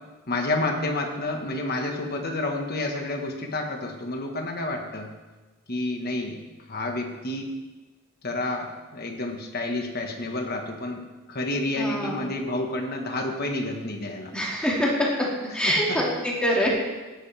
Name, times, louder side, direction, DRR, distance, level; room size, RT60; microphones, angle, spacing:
voice 1, 0.3-5.1 5.7-6.4 6.7-7.5 8.2-11.0 11.3-14.3 15.6-16.0, left 2 dB, 45° left, 2 dB, 1.5 m, -29 dB
voice 2, 11.8-12.2 14.3-16.7, equal, 5° left, -4 dB, 2.2 m, -25 dB
15.0 x 10.0 x 3.5 m, 1.2 s
head